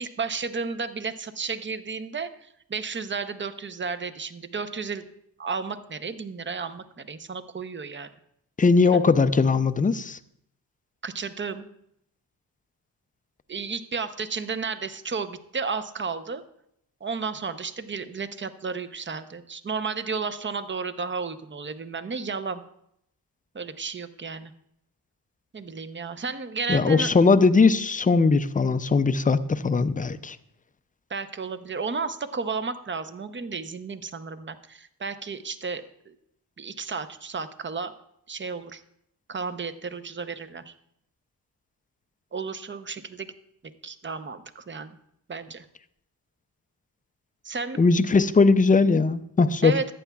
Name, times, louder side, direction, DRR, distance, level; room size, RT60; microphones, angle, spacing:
voice 1, 0.0-5.1 5.4-8.1 8.9-9.0 11.0-11.7 13.5-16.4 17.0-22.6 23.5-24.5 25.5-27.1 31.1-36.1 36.6-37.9 38.3-38.8 39.3-40.7 42.3-43.3 43.8-45.0 45.3-45.7 47.4-47.8 49.6-49.9, right 5 dB, 30° right, 11 dB, 0.7 m, -33 dB
voice 2, 8.6-10.2 26.7-30.4 47.8-49.7, left 4 dB, 20° left, 12 dB, 0.4 m, -20 dB
14.0 x 9.1 x 2.3 m, 0.74 s
cardioid pair, 65°, 41 cm